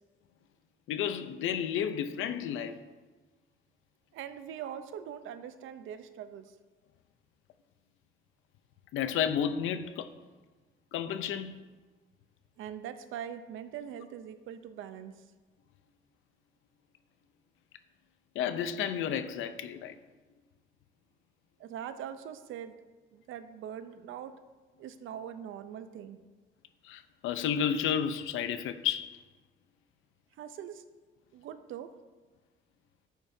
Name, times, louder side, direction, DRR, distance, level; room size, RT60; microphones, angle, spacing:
voice 1, 0.9-2.8 8.9-10.1 10.9-11.5 18.3-19.9 26.8-29.1, left 8 dB, 90° left, 0.7 m, -31 dB
voice 2, 4.1-6.5 12.6-15.1 21.6-22.8 23.1-24.3 24.8-26.2 30.4-30.8 31.3-31.9, right 9 dB, 85° right, 0.7 m, -42 dB
12.0 x 8.8 x 2.7 m
cardioid pair, 90°, 20 cm